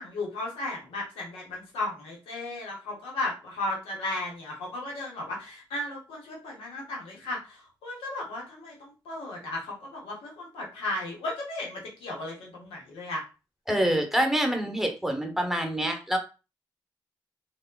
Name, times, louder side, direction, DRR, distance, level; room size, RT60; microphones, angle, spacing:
voice 1, 0.0-13.2, left 2 dB, 90° left, -2 dB, 0.8 m, -35 dB
voice 2, 13.7-16.2, right 1 dB, 5° right, 4 dB, 0.8 m, -26 dB
3.4 x 2.0 x 2.2 m, 0.31 s
supercardioid pair, 40°, 9 cm